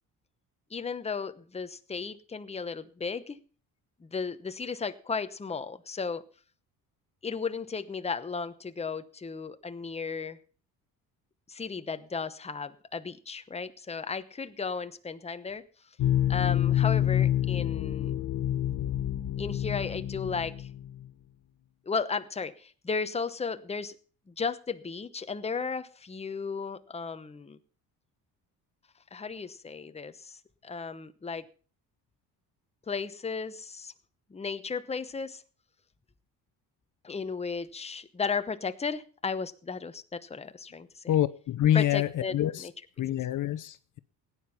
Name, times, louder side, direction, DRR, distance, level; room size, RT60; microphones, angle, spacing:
voice 1, 0.7-3.4 4.0-6.2 7.2-10.4 11.5-15.6 16.3-18.2 19.4-20.7 21.8-23.9 24.3-27.6 29.1-30.4 30.6-31.5 32.9-33.9 34.3-35.4 37.0-41.1 41.7-42.3 42.6-42.7, left 5 dB, 15° left, 0.9 m, -35 dB
sound 1, 16.0-21.0, left 11 dB, 70° left, 1.2 m, -27 dB
voice 2, 41.1-42.7 43.0-44.0, left 12 dB, 55° left, 0.8 m, -26 dB
16.5 x 9.8 x 5.7 m
cardioid pair, 110°, 38 cm